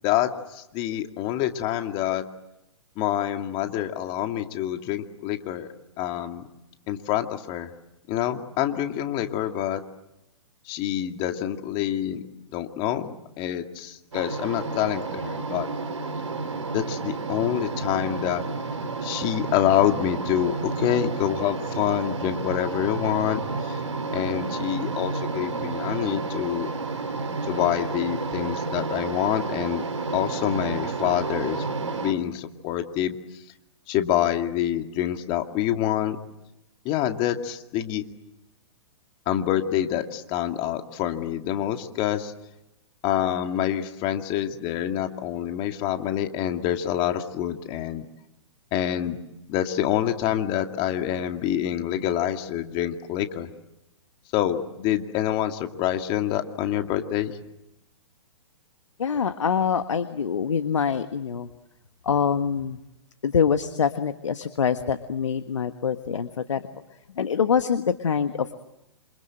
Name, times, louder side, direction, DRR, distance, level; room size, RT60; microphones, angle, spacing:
voice 1, 0.0-2.2 3.0-5.7 6.0-6.4 6.9-7.7 8.1-9.8 10.7-12.2 12.5-13.1 13.4-15.7 16.7-18.4 19.0-23.8 24.1-26.7 27.4-29.8 30.1-33.2 33.9-36.2 36.8-38.0 39.3-42.3 43.0-48.1 48.7-49.2 49.5-53.5 54.3-57.3, left 11 dB, 35° left, 6 dB, 2.4 m, -26 dB
sound 1, 14.1-32.1, right 4 dB, 80° right, 4.2 m, -31 dB
voice 2, 59.0-61.5 62.0-62.8 63.2-66.6 67.1-68.5, left 7 dB, 75° left, 9 dB, 1.5 m, -25 dB
28.0 x 27.0 x 7.8 m, 0.90 s
hypercardioid pair, 125°, 16 cm